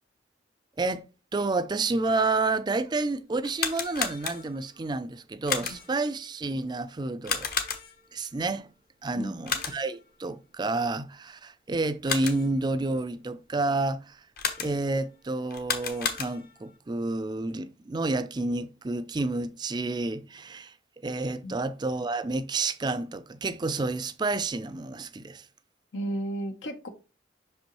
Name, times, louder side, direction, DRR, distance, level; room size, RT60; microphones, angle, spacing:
voice 1, 1.3-7.5 8.1-8.7 9.0-14.3 14.6-20.7 21.0-25.5, right 3 dB, 25° right, 0.4 m, -30 dB
sound 1, 3.4-4.7 5.5-6.0 7.2-8.1 9.4-10.0 11.8-12.6 14.4-15.0 15.5-16.6, left 6 dB, 50° left, 0.9 m, -32 dB
voice 2, 25.9-26.9, right 1 dB, 80° left, 0.9 m, -34 dB
6.0 x 5.2 x 3.0 m
head